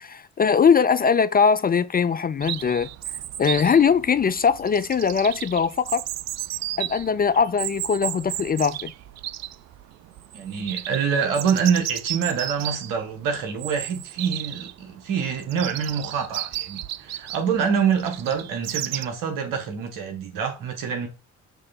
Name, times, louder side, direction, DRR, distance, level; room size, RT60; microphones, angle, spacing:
voice 1, 0.0-2.9 3.4-6.0 6.8-8.9, left 6 dB, 30° left, 0.4 m, -21 dB
Chirp tweet, 2.4-19.1, right 14 dB, 55° right, 0.5 m, -34 dB
voice 2, 10.3-21.1, right 6 dB, 70° right, 1.8 m, -26 dB
6.8 x 3.3 x 4.3 m
hypercardioid pair, 50°, 33 cm